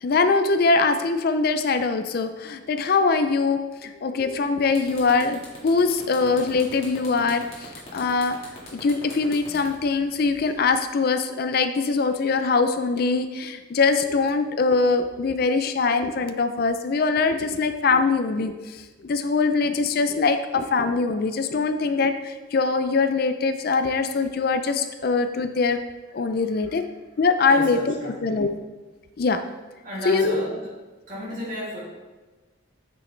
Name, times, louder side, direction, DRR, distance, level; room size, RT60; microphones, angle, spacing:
voice 1, 0.0-8.4 8.8-25.8 26.1-26.8 27.2-28.5 29.2-29.4 30.1-30.4, left 4 dB, 50° left, 9 dB, 0.4 m, -22 dB
sound 1, 4.2-4.4 4.7-10.8, left 2 dB, 30° left, 2.0 m, -42 dB
voice 2, 26.3-26.8 27.5-28.5 29.8-30.6 31.1-31.8, equal, 40° right, -6 dB, 2.6 m, -34 dB
8.7 x 6.2 x 3.3 m, 1.3 s
head